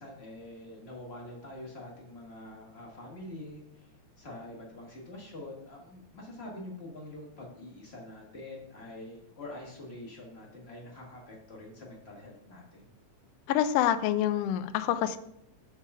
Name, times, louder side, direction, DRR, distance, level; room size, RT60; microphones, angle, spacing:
voice 1, 0.0-3.9 4.2-12.9, left 1 dB, 30° left, -2 dB, 1.2 m, -45 dB
voice 2, 13.5-15.2, left 11 dB, 85° left, 12 dB, 1.3 m, -26 dB
7.3 x 4.8 x 5.4 m, 0.77 s
omnidirectional pair, 3.3 m